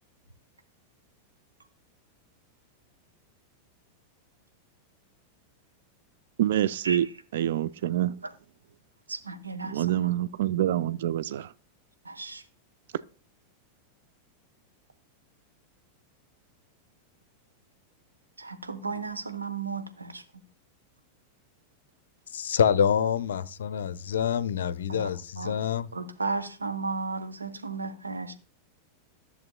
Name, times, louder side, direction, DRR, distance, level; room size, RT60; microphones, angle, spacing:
voice 1, 6.4-7.1 7.3-8.2 9.6-11.5, right 12 dB, 60° right, 0.3 m, -26 dB
voice 2, 9.1-9.7 12.1-12.4 18.4-20.2 24.9-25.1 25.4-25.5 25.9-28.3, right 4 dB, 80° right, 0.9 m, -34 dB
voice 3, 22.3-25.9, left 8 dB, 65° left, 0.5 m, -26 dB
13.5 x 6.8 x 2.2 m
figure-of-eight pair, 90°, 0 cm